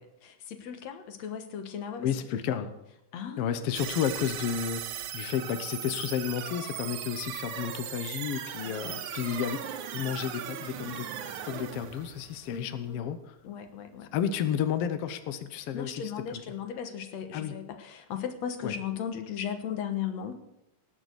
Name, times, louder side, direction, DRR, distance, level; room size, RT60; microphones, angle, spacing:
voice 1, 0.2-2.4 3.1-3.5 8.8-9.4 12.5-13.1 13.4-14.1 15.7-20.4, left 8 dB, 60° left, 7 dB, 2.2 m, -37 dB
voice 2, 2.0-2.7 3.4-9.6 9.9-11.1 11.4-13.3 14.1-16.4 17.3-17.5 18.6-18.7, left 8 dB, 85° left, 10 dB, 1.3 m, -32 dB
sound 1, 3.7-13.0, right 9 dB, 70° right, 2.3 m, -38 dB
18.5 x 6.7 x 8.0 m, 0.85 s
omnidirectional pair, 4.0 m